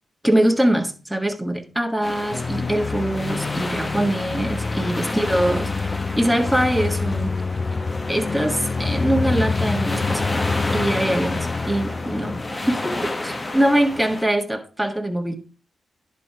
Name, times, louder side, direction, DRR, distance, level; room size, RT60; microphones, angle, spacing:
voice 1, 0.2-7.4 8.1-10.3 10.7-15.4, right 1 dB, 5° right, 1.6 m, -23 dB
sound 1, 2.0-14.3, left 2 dB, 30° left, 1.1 m, -31 dB
sound 2, 2.3-13.1, left 4 dB, 45° left, 0.6 m, -27 dB
10.5 x 4.4 x 4.8 m
supercardioid pair, 50°, 0 cm